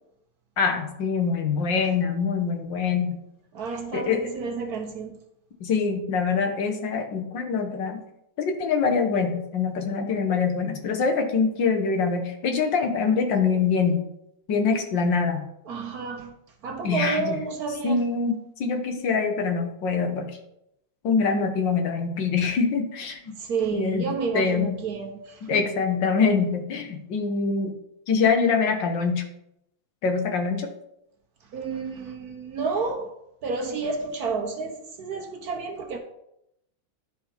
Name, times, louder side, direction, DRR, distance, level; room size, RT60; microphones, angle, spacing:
voice 1, 0.6-3.2 3.9-4.3 5.6-8.0 8.4-14.0 14.5-15.5 16.8-17.4 17.8-20.3 21.0-23.2 23.7-24.1 24.3-24.8 25.4-27.7 28.1-29.2 30.0-30.7, left 5 dB, 70° left, 1.7 m, -24 dB
voice 2, 3.5-5.2 15.7-16.3 16.6-18.1 23.4-25.6 31.5-33.1 33.4-36.0, right 4 dB, 60° right, 1.3 m, -30 dB
11.0 x 5.0 x 4.4 m
omnidirectional pair, 2.1 m